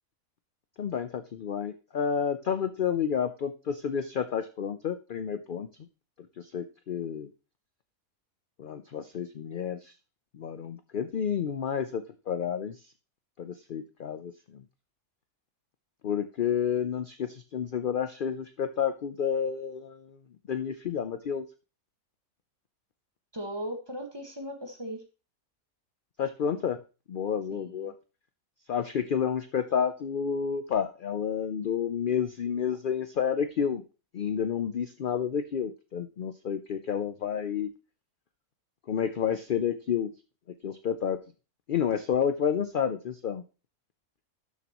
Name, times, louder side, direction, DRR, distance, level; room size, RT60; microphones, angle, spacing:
voice 1, 0.8-5.7 6.4-7.3 8.6-9.9 10.3-12.8 13.4-14.6 16.0-20.2 20.5-21.5 26.2-26.8 27.1-27.9 28.7-33.8 34.1-37.7 38.9-40.1 40.6-41.2 41.7-43.4, left 7 dB, 60° left, 10 dB, 0.5 m, -30 dB
voice 2, 23.3-25.0 27.5-27.9, equal, 20° right, 3 dB, 1.5 m, -38 dB
12.0 x 7.1 x 3.0 m, 0.33 s
omnidirectional pair, 1.5 m